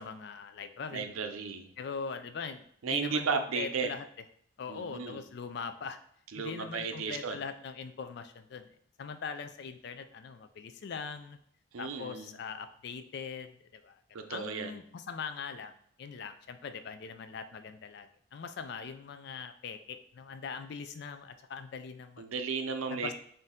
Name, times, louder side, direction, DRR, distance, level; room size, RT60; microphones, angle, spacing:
voice 1, 0.0-1.0 1.8-4.0 4.6-6.0 6.3-11.4 11.8-15.7 16.0-22.2 22.9-23.1, left 5 dB, 55° left, 9 dB, 0.3 m, -41 dB
voice 2, 0.9-1.7 2.8-3.9 4.7-5.2 6.3-7.4 11.7-12.3 14.1-14.8 22.2-23.1, right 5 dB, 85° right, 7 dB, 0.5 m, -34 dB
4.2 x 2.6 x 3.6 m, 0.64 s
head